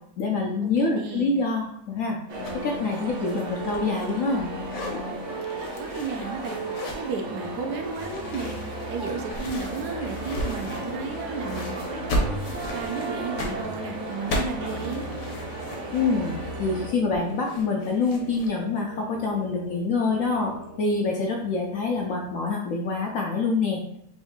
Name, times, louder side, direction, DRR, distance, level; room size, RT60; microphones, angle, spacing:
voice 1, 0.2-2.2 2.6-4.5 15.9-23.8, left 3 dB, 70° left, 0 dB, 0.8 m, -26 dB
voice 2, 0.8-1.4 5.5-15.1, right 4 dB, 75° right, 3 dB, 1.2 m, -34 dB
sound 1, 2.3-16.9, right 2 dB, 55° right, 1.0 m, -34 dB
sound 2, 2.4-2.6 2.9-4.4 4.6-5.0 5.5-7.1 7.9-11.2 11.4-18.5, left 1 dB, 85° left, 1.4 m, -35 dB
sound 3, 8.5-22.5, right 1 dB, 40° left, 0.8 m, -45 dB
4.1 x 2.6 x 3.6 m, 0.72 s
omnidirectional pair, 1.8 m